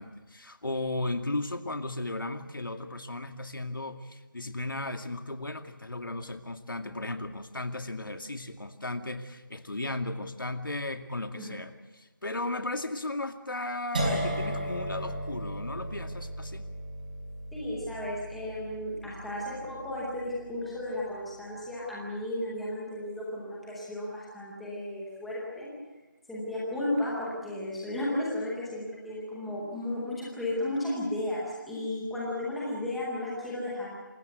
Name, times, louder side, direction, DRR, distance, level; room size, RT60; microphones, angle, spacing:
voice 1, 0.0-16.7, left 2 dB, 80° left, 6 dB, 2.3 m, -35 dB
sound 1, 13.9-19.9, right 1 dB, 25° right, 5.4 m, -35 dB
voice 2, 17.5-25.7 26.3-33.9, left 1 dB, ahead, -7 dB, 0.8 m, -34 dB
27.0 x 16.0 x 8.0 m, 1.2 s
figure-of-eight pair, 180°, 11 cm